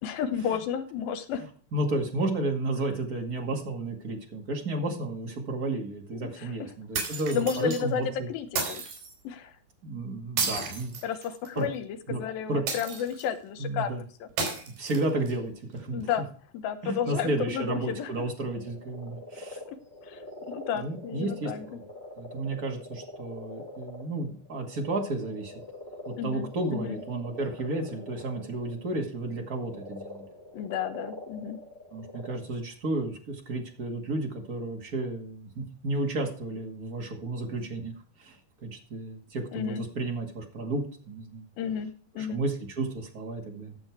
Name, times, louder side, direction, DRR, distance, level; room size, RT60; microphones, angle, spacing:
voice 1, 0.0-1.4 6.1-6.5 7.1-8.8 9.2-9.5 11.0-14.0 14.2-14.3 15.9-16.2 16.5-18.1 19.7-19.8 20.0-20.2 20.5-21.7 26.2-27.0 30.5-31.6 39.5-39.9 41.6-42.4, left 8 dB, 75° left, 9 dB, 2.8 m, -32 dB
voice 2, 1.7-8.3 9.8-11.0 11.6-11.7 12.1-12.2 12.5-12.6 13.6-14.0 14.7-16.1 16.8-19.6 20.7-21.8 22.2-25.5 26.1-30.3 31.9-37.9 38.2-41.5 42.2-43.8, right 2 dB, 30° right, 2 dB, 1.8 m, -32 dB
sound 1, 6.9-7.8 8.6-9.1 10.4-11.6 12.7-13.3 14.4-15.3, right 4 dB, 85° right, 5.2 m, -32 dB
sound 2, 18.5-28.9 29.3-32.4, left 1 dB, 10° left, 4.1 m, -44 dB
13.0 x 7.0 x 4.6 m, 0.43 s
omnidirectional pair, 4.3 m